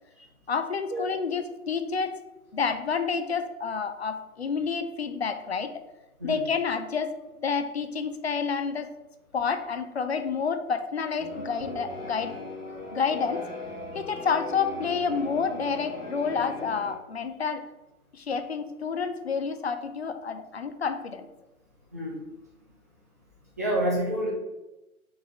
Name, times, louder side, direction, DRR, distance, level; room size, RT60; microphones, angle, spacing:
voice 1, 0.5-2.2 2.5-5.8 6.2-8.9 9.3-12.4 12.9-13.5 13.9-17.7 18.1-21.3, left 5 dB, 45° left, 9 dB, 0.5 m, -29 dB
sound 1, 11.2-16.9, left 2 dB, 25° left, 1.2 m, -38 dB
voice 2, 21.9-22.2 23.6-24.3, right 1 dB, 10° right, -6 dB, 0.5 m, -28 dB
4.8 x 4.0 x 4.9 m, 1.0 s
figure-of-eight pair, 140°, 44 cm